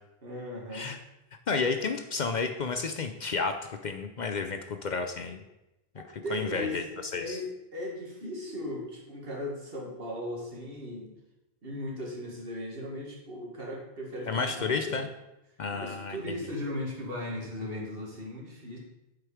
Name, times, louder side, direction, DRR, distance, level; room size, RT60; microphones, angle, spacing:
voice 1, 0.2-0.9 6.0-6.8 7.1-11.1 11.6-15.0 15.7-18.8, left 1 dB, 65° right, -1 dB, 2.0 m, -37 dB
voice 2, 1.5-3.5 3.8-5.4 6.0-6.1 6.3-6.8 7.1-7.4 14.3-15.1 15.6-16.4, left 4 dB, 55° left, 7 dB, 0.6 m, -31 dB
7.8 x 4.9 x 4.8 m, 0.94 s
omnidirectional pair, 1.0 m